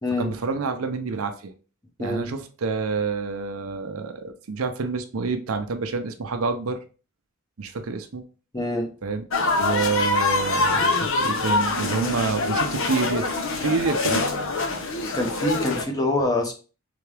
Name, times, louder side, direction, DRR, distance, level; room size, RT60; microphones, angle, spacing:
voice 1, 0.2-1.5 2.0-6.8 7.6-8.2 9.0-9.2 9.5-14.4, right 4 dB, 75° right, 7 dB, 0.6 m, -28 dB
voice 2, 2.0-2.3 8.5-8.9 15.1-16.5, left 1 dB, 20° left, 2 dB, 0.9 m, -25 dB
sound 1, 9.3-15.8, left 3 dB, 65° left, 0.7 m, -24 dB
3.7 x 3.4 x 3.3 m, 0.36 s
head